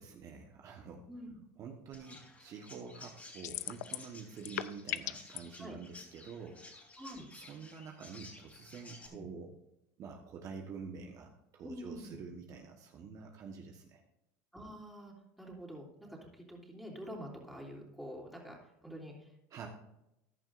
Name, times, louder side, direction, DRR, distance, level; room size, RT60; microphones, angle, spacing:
voice 1, 0.0-1.1 1.6-6.8 7.3-9.5 10.0-14.0 19.5-19.7, right 5 dB, 45° right, 2 dB, 1.4 m, -47 dB
voice 2, 1.1-1.4 5.6-5.8 7.0-7.2 9.1-9.2 11.6-12.2 14.5-19.3, equal, ahead, -2 dB, 3.1 m, -47 dB
Chirp tweet, 1.9-9.1, left 3 dB, 20° left, 3.3 m, -54 dB
sound 1, 3.4-4.1 4.4-5.4, left 15 dB, 90° left, 0.5 m, -37 dB
15.0 x 11.0 x 2.6 m, 0.86 s
supercardioid pair, 120°, 8 cm